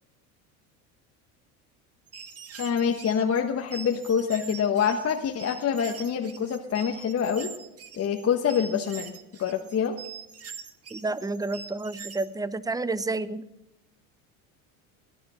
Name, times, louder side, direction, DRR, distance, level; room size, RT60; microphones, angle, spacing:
sound 1, 2.1-12.3, right 5 dB, 35° right, 1.8 m, -43 dB
voice 1, 2.6-7.5 7.9-9.1 9.4-9.9, left 7 dB, 35° left, 3 dB, 1.3 m, -26 dB
voice 2, 10.9-13.4, right 3 dB, 10° right, 16 dB, 0.8 m, -30 dB
19.0 x 10.5 x 6.3 m, 0.88 s
hypercardioid pair, 85°, 41 cm